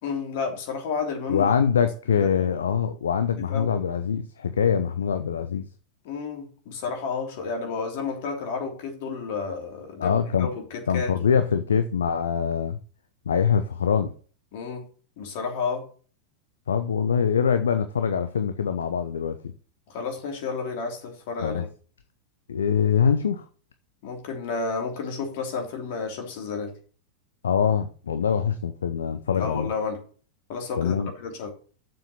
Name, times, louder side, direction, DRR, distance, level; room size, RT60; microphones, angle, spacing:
voice 1, 0.0-1.5 2.1-2.6 3.4-3.7 6.0-11.3 14.5-14.8 15.2-15.8 19.9-21.7 24.0-26.7 29.4-30.0 30.5-31.5, left 5 dB, 50° left, 3.2 m, -31 dB
voice 2, 1.3-5.7 10.0-10.5 10.9-12.8 13.3-14.1 16.7-19.5 21.4-21.6 22.5-23.4 27.4-29.7 30.8-31.1, left 7 dB, 65° left, 0.7 m, -24 dB
7.2 x 6.3 x 7.0 m
figure-of-eight pair, 90°, 0 cm